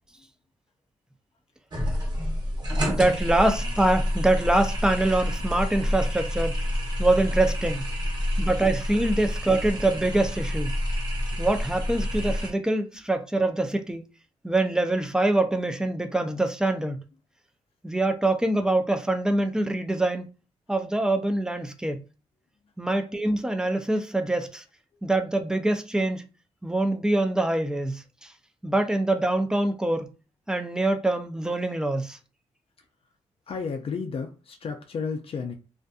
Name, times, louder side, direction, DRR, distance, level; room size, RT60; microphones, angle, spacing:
sound 1, 1.7-12.5, equal, 35° right, 1.0 m, -28 dB
voice 1, 2.9-6.6 7.0-7.8 8.4-10.7 11.4-14.0 14.4-17.0 17.8-20.3 20.7-22.0 22.8-24.6 25.0-26.2 26.6-28.3 28.6-30.1 30.5-32.2, right 2 dB, 5° right, 0.5 m, -24 dB
voice 2, 8.0-8.3 12.9-13.1 32.8-32.9 33.5-35.5, left 5 dB, 50° left, 0.4 m, -34 dB
2.5 x 2.5 x 2.3 m
cardioid pair, 70°, 12 cm